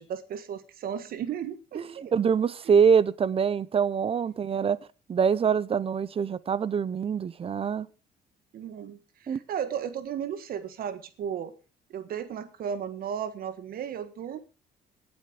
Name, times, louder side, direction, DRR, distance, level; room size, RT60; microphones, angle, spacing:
voice 1, 0.0-2.1 2.7-2.8 4.4-4.5 8.5-11.5 11.9-14.4, right 8 dB, 60° right, 1.6 m, -35 dB
voice 2, 1.7-4.8 5.1-7.9 9.3-9.4, right 7 dB, 35° right, 0.8 m, -24 dB
18.0 x 8.1 x 5.1 m
cardioid pair, 110°, 17 cm